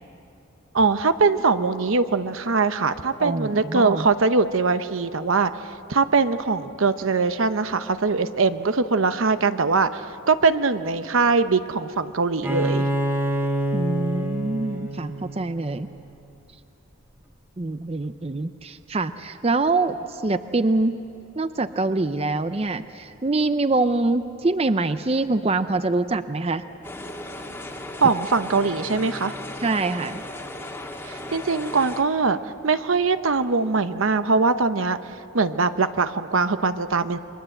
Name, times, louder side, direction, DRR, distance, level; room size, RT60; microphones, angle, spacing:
voice 1, 0.7-5.5 5.9-12.9 28.0-29.3 31.0-32.4 32.6-35.0 35.3-37.2, right 4 dB, 75° right, 11 dB, 0.9 m, -22 dB
voice 2, 3.2-4.1 13.7-15.9 17.6-21.0 21.4-26.6 29.6-30.2, right 3 dB, 30° right, 11 dB, 0.5 m, -24 dB
Bowed string instrument, 12.4-16.0, right 1 dB, 10° right, 1.6 m, -27 dB
sound 1, 26.8-32.0, left 1 dB, 10° left, 1.7 m, -36 dB
29.5 x 23.5 x 7.9 m, 2.8 s
head